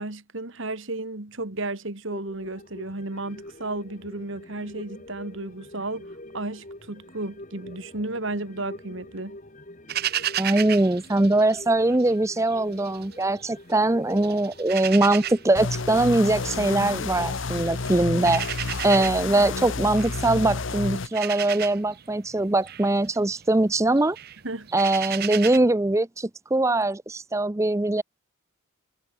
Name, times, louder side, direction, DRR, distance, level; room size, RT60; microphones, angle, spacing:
voice 1, 0.0-9.4 24.4-24.7, right 2 dB, 60° right, 2.0 m, -33 dB
sound 1, 2.1-18.9 19.2-19.3, left 1 dB, 35° left, 3.1 m, -46 dB
sound 2, 9.9-12.1 12.5-13.8 14.1-25.6, right 11 dB, 45° right, 0.9 m, -34 dB
voice 2, 10.4-18.4 18.8-24.2 24.7-28.0, right 2 dB, 15° right, 0.5 m, -22 dB
sound 3, 15.6-21.1, left 4 dB, 60° left, 0.9 m, -30 dB
head